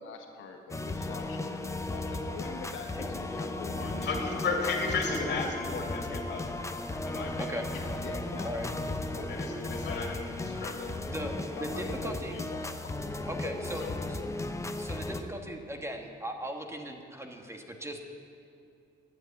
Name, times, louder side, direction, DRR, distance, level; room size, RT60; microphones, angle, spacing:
voice 1, 0.0-4.6 7.7-10.6 11.2-12.9 13.4-14.4, left 4 dB, 85° left, 3 dB, 1.6 m, -44 dB
sound 1, 0.7-15.2, left 2 dB, 15° left, 0.9 m, -35 dB
voice 2, 3.8-6.4 7.1-7.6 9.3-10.2 10.4-10.9, left 4 dB, 60° left, 1 dB, 2.6 m, -34 dB
voice 3, 11.6-12.4 13.2-13.8 14.8-18.0, right 1 dB, 15° right, 3 dB, 1.5 m, -38 dB
12.5 x 9.6 x 8.5 m, 2.6 s
cardioid pair, 90°, 20 cm